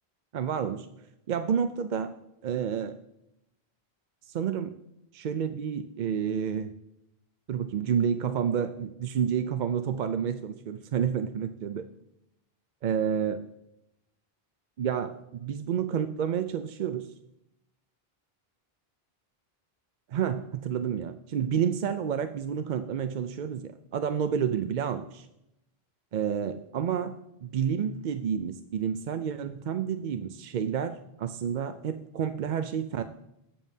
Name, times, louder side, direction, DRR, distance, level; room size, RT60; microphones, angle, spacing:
voice 1, 0.3-0.9 1.3-2.2 2.4-3.0 4.3-4.7 5.1-6.7 7.5-11.9 12.8-13.5 14.8-17.1 20.1-25.3 26.1-33.0, right 8 dB, 60° right, 9 dB, 0.6 m, -30 dB
20.0 x 7.2 x 2.7 m, 0.85 s
omnidirectional pair, 1.0 m